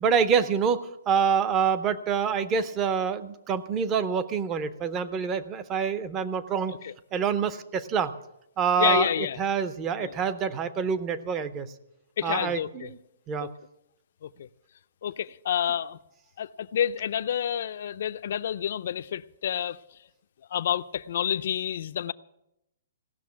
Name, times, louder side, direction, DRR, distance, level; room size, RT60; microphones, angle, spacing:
voice 1, 0.0-6.7 7.1-8.1 8.6-9.1 9.4-11.7 12.2-13.0 13.3-13.5, right 6 dB, 15° right, 0.6 m, -26 dB
voice 2, 8.8-9.4 10.0-10.2 12.2-12.9 13.4-13.5 14.2-14.5 15.0-16.0 16.4-19.8 20.5-22.1, left 9 dB, 45° left, 0.5 m, -29 dB
17.0 x 6.5 x 9.6 m
hypercardioid pair, 175°, 0 cm